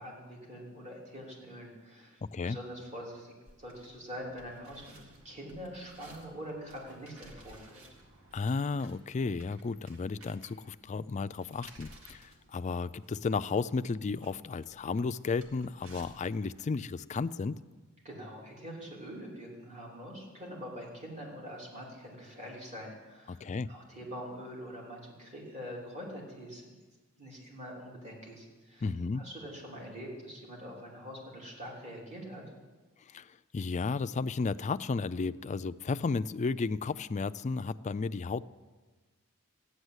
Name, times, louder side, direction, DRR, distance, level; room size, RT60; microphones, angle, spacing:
voice 1, 0.0-7.8 18.0-26.8 27.2-28.9 29.1-32.4, equal, 30° right, -3 dB, 3.4 m, -44 dB
voice 2, 2.2-2.6 8.3-17.6 23.3-23.7 28.8-29.3 33.1-38.4, left 4 dB, 30° left, 13 dB, 0.4 m, -33 dB
sound 1, 3.5-16.6, right 2 dB, 65° right, 2.1 m, -57 dB
14.5 x 10.0 x 8.1 m, 1.3 s
head